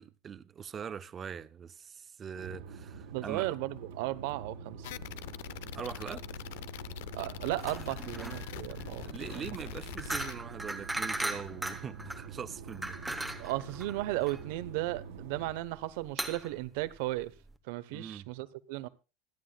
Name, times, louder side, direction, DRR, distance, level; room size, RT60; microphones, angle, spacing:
voice 1, 0.0-3.6 5.7-6.2 9.1-13.0 17.9-18.3, right 7 dB, 20° right, 0.5 m, -42 dB
sound 1, 2.3-15.5, right 5 dB, 85° right, 3.8 m, -46 dB
voice 2, 3.1-4.9 7.1-9.4 13.4-17.3 17.7-18.9, right 17 dB, 65° right, 1.0 m, -35 dB
sound 2, 4.8-10.3, left 16 dB, 80° left, 0.6 m, -43 dB
sound 3, 7.6-17.6, right 2 dB, 5° right, 1.0 m, -39 dB
25.5 x 9.7 x 2.3 m
cardioid pair, 175°, 0 cm